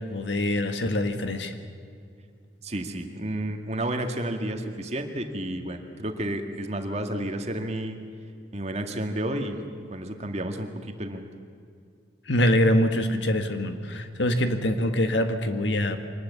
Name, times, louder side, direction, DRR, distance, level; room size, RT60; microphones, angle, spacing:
voice 1, 0.0-1.5 12.3-16.0, left 1 dB, 70° left, 7 dB, 1.8 m, -24 dB
voice 2, 2.6-8.0 8.5-9.6 9.9-11.3, right 1 dB, 35° right, 5 dB, 2.0 m, -31 dB
25.0 x 20.0 x 8.3 m, 2.3 s
head